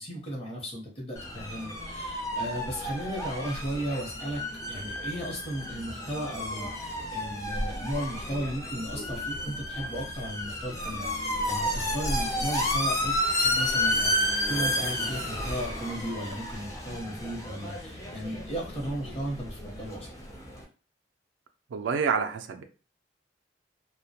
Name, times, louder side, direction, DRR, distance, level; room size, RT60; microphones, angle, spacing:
voice 1, 0.0-4.4 4.7-20.1, right 1 dB, 30° left, 0.8 m, -35 dB
sound 1, 1.2-20.6, left 1 dB, 15° left, 0.4 m, -32 dB
voice 2, 21.7-22.6, right 6 dB, 85° right, 0.3 m, -28 dB
2.2 x 2.1 x 2.7 m
head